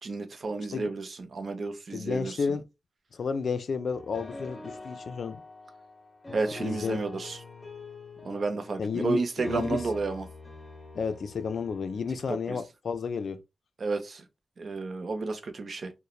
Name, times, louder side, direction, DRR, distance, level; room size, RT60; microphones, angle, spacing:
voice 1, 0.0-2.4 6.3-7.4 8.2-10.2 12.3-12.6 13.8-14.2 14.6-15.9, right 3 dB, 55° right, 0.5 m, -31 dB
voice 2, 1.9-2.6 3.1-5.4 6.6-7.0 8.8-9.9 10.9-13.4, left 5 dB, 70° left, 0.3 m, -31 dB
sound 1, 3.9-12.5, left 3 dB, 25° left, 0.9 m, -45 dB
3.0 x 2.0 x 2.3 m
wide cardioid pair, 110°, 0 cm